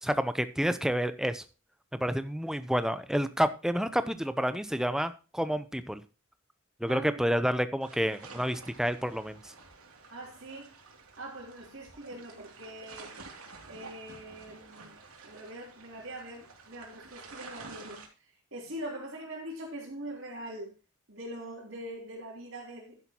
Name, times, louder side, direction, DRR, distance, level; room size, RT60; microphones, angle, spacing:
voice 1, 0.0-1.4 1.9-6.0 6.8-9.5, equal, ahead, 0.6 m, -29 dB
voice 2, 6.9-7.2 10.1-10.7 11.2-13.1 13.7-15.0 15.2-18.0 18.5-20.7 21.1-23.0, right 1 dB, 60° right, 3.4 m, -42 dB
sound 1, 7.8-18.1, right 4 dB, 85° right, 2.8 m, -50 dB
11.0 x 10.5 x 2.9 m
head